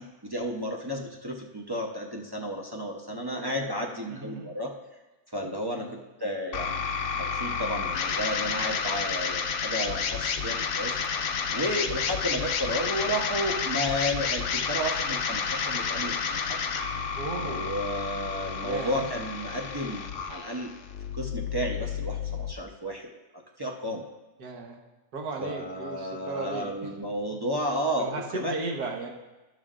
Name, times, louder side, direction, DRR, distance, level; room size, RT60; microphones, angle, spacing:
voice 1, 0.0-4.7 5.3-6.8 7.1-11.0 11.5-16.6 17.4-20.7 21.1-23.1 23.6-24.0 25.4-28.5, equal, 30° right, 0 dB, 0.4 m, -32 dB
voice 2, 3.3-3.7 4.1-4.5 5.4-6.0 17.2-17.8 18.6-19.1 24.4-24.8 25.1-26.9 27.3-27.4 28.0-29.1, right 3 dB, 80° right, 1 dB, 1.8 m, -36 dB
sound 1, 6.5-22.5, left 6 dB, 60° left, 0.9 m, -31 dB
12.5 x 11.0 x 2.5 m, 1.1 s
omnidirectional pair, 1.7 m